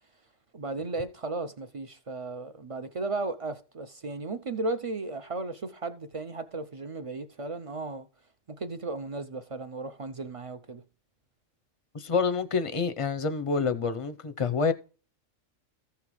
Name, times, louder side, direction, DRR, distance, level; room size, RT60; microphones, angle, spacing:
voice 1, 0.5-8.1 8.5-10.8, right 3 dB, 60° right, 0.3 m, -35 dB
voice 2, 11.9-14.7, left 5 dB, 40° left, 0.5 m, -27 dB
14.5 x 5.8 x 3.1 m
omnidirectional pair, 1.4 m